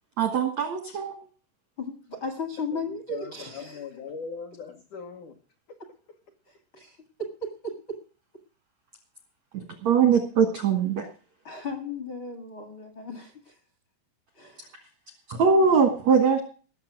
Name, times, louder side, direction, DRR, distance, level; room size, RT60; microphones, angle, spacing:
voice 1, 0.2-1.2 9.5-11.1 15.3-16.4, right 6 dB, 80° right, 5 dB, 1.5 m, -22 dB
voice 2, 1.8-3.8 6.5-8.0 11.4-13.6 14.3-14.7, left 2 dB, 55° left, 5 dB, 1.3 m, -36 dB
voice 3, 3.1-5.4 5.7-5.8, left 5 dB, 85° left, 3 dB, 1.7 m, -39 dB
18.5 x 7.2 x 6.0 m, 0.38 s
omnidirectional pair, 5.7 m